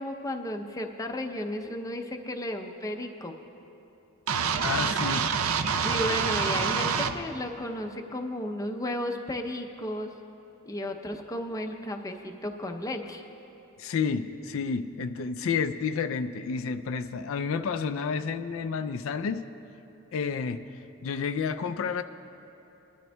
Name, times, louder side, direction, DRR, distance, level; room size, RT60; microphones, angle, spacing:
voice 1, 0.0-3.3 5.8-10.1 10.7-13.2, left 1 dB, 15° left, 3 dB, 0.5 m, -34 dB
sound 1, 4.3-7.1, right 6 dB, 80° right, 0.5 m, -26 dB
voice 2, 4.6-5.5 13.8-19.4 20.1-20.6 21.0-22.0, left 5 dB, 70° left, 8 dB, 0.3 m, -30 dB
20.0 x 12.0 x 2.2 m, 2.9 s
head